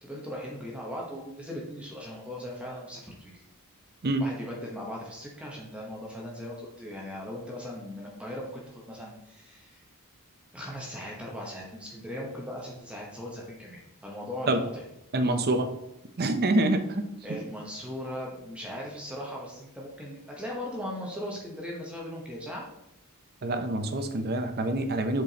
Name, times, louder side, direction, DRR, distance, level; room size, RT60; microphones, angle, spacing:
voice 1, 0.0-3.5 4.2-9.8 10.5-14.8 17.2-22.7, left 1 dB, 5° right, -3 dB, 1.0 m, -38 dB
voice 2, 15.1-15.7 16.2-17.0 23.4-25.2, right 2 dB, 45° right, 8 dB, 0.6 m, -26 dB
8.2 x 4.5 x 2.9 m, 0.86 s
head